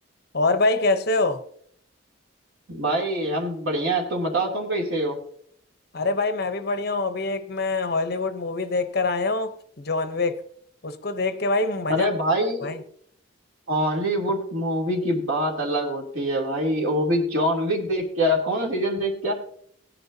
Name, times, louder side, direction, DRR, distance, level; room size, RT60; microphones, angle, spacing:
voice 1, 0.3-1.4 5.9-10.4 10.8-12.1 12.6-12.8, left 3 dB, 50° left, 0.8 m, -24 dB
voice 2, 2.7-5.2 11.9-12.7 13.7-19.3, equal, 85° right, 2.9 m, -24 dB
17.5 x 10.0 x 2.7 m
head